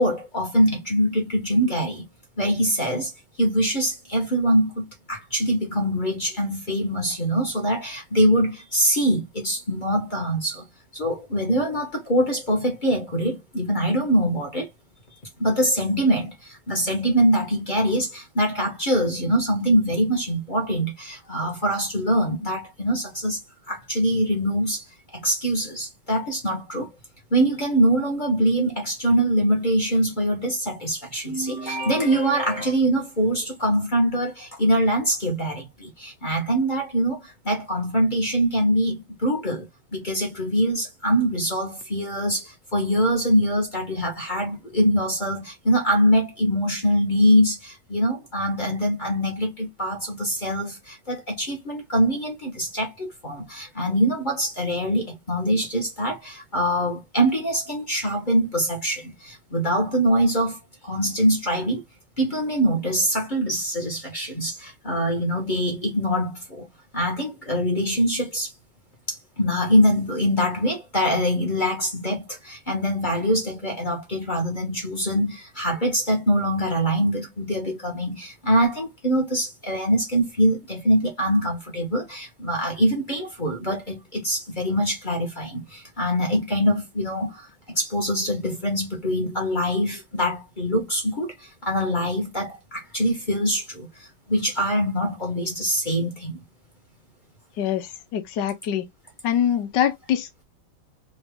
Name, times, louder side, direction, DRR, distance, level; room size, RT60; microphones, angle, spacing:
voice 1, 0.0-2.1 2.4-3.1 3.4-10.7 10.9-14.7 15.4-23.4 23.7-24.8 25.1-26.9 27.3-39.7 39.9-60.6 60.8-61.8 62.2-66.7 66.9-68.5 69.1-87.5 87.7-93.9 94.3-96.4, equal, 30° left, 1.1 m, -23 dB
voice 2, 97.6-98.9 99.2-100.4, left 10 dB, 70° left, 1.4 m, -24 dB
4.0 x 2.8 x 3.5 m
omnidirectional pair, 2.1 m